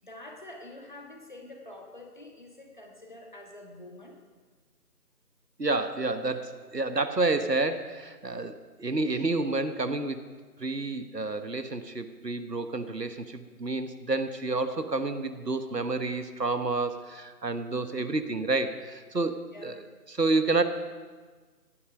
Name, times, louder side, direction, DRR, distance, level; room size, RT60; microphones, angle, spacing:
voice 1, 0.0-4.2 18.0-18.2 19.5-19.7, left 2 dB, 30° left, 2 dB, 1.4 m, -46 dB
voice 2, 5.6-10.2 10.6-19.8 20.1-20.6, right 3 dB, 85° right, 10 dB, 1.3 m, -29 dB
15.0 x 11.5 x 5.3 m, 1.4 s
figure-of-eight pair, 160°, 48 cm